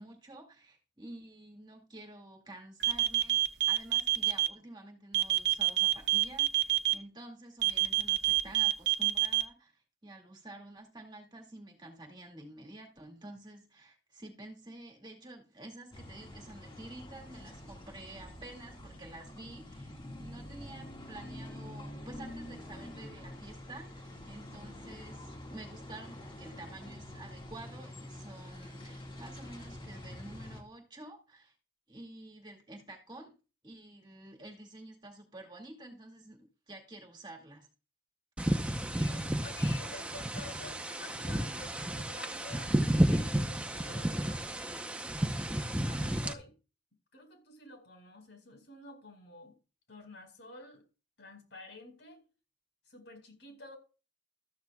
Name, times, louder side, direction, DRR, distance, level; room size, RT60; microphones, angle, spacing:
voice 1, 0.0-19.9 20.2-31.5 31.9-33.3 33.6-37.7, right 2 dB, 25° right, 2.3 m, -50 dB
sound 1, 2.8-4.5 5.1-6.9 7.6-9.4, right 16 dB, 65° right, 0.9 m, -26 dB
sound 2, 15.9-30.6, left 1 dB, 25° left, 2.0 m, -47 dB
sound 3, 38.4-46.3, right 1 dB, 5° right, 0.8 m, -31 dB
voice 2, 38.9-44.5 45.4-46.5 47.1-49.6 49.9-50.8 51.2-52.2 52.9-53.8, left 2 dB, 75° left, 4.8 m, -50 dB
13.5 x 13.0 x 2.4 m
head